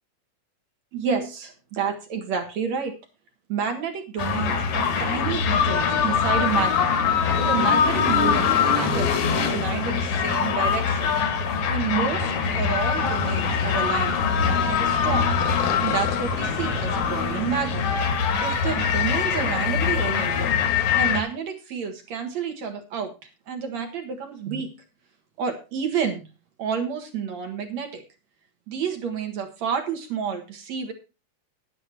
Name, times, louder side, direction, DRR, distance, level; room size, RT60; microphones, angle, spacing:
voice 1, 0.9-3.0 3.5-6.9 7.4-11.1 11.7-15.4 15.8-17.9 18.4-20.6 20.9-23.1 23.5-24.7 25.4-26.3 26.6-28.0 28.7-30.9, right 7 dB, 55° right, 5 dB, 2.7 m, -29 dB
sound 1, 4.2-21.2, left 6 dB, 60° left, 2.6 m, -23 dB
11.0 x 10.0 x 4.6 m, 0.30 s
omnidirectional pair, 4.1 m